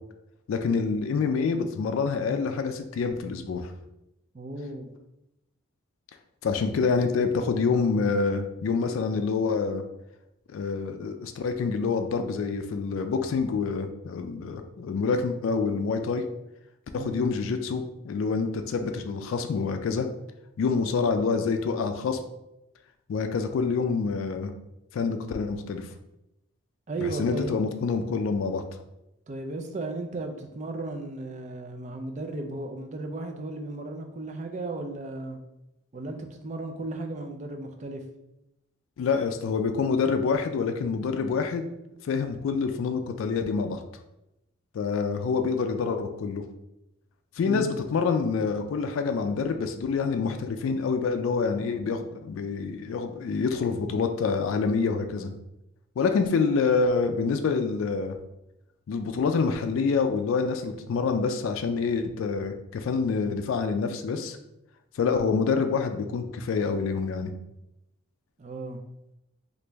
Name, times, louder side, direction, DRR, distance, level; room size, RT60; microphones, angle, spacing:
voice 1, 0.5-3.7 6.4-9.8 10.5-16.2 16.9-20.1 20.6-22.2 23.1-24.5 24.9-25.9 27.0-28.6 39.0-41.6 42.0-43.8 44.7-46.4 47.4-55.3 56.0-58.2 58.9-64.4 64.9-67.3, left 5 dB, 70° left, 6 dB, 0.3 m, -27 dB
voice 2, 4.3-4.9 16.9-17.2 26.9-27.6 29.3-35.4 35.9-38.0 47.4-47.7 68.4-68.8, right 2 dB, 35° right, 4 dB, 0.3 m, -35 dB
3.1 x 2.5 x 3.3 m, 0.89 s
head